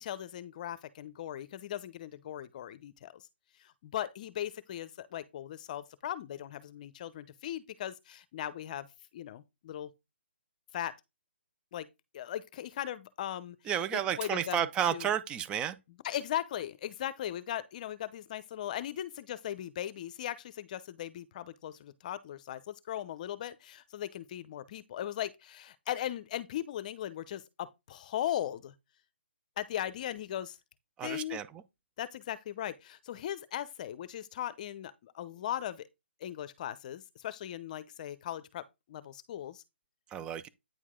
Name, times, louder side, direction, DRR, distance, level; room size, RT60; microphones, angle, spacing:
voice 1, 0.0-3.2 3.6-8.9 9.1-9.9 10.7-11.0 11.7-11.9 12.1-13.6 13.9-15.1 16.0-28.7 29.6-30.6 31.0-31.4 32.0-35.9 36.2-39.6, left 11 dB, 40° left, 0.8 m, -38 dB
voice 2, 13.7-15.8 31.0-31.5 40.1-40.5, right 9 dB, 15° right, 0.5 m, -31 dB
9.2 x 4.6 x 3.7 m
hypercardioid pair, 150°, 6 cm